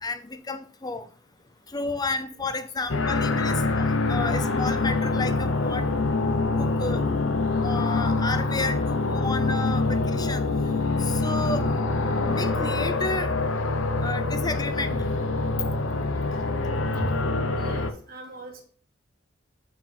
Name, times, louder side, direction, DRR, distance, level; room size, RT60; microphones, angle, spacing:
voice 1, 0.0-1.1 1.7-5.9 6.6-7.0 7.6-10.4 11.0-11.6 12.3-13.3 14.0-14.9, left 3 dB, 20° left, 10 dB, 0.5 m, -31 dB
sound 1, 2.9-17.9, left 3 dB, 80° left, 0.8 m, -25 dB
voice 2, 17.6-18.6, equal, 50° right, -1 dB, 1.8 m, -39 dB
5.8 x 4.9 x 4.1 m, 0.43 s
head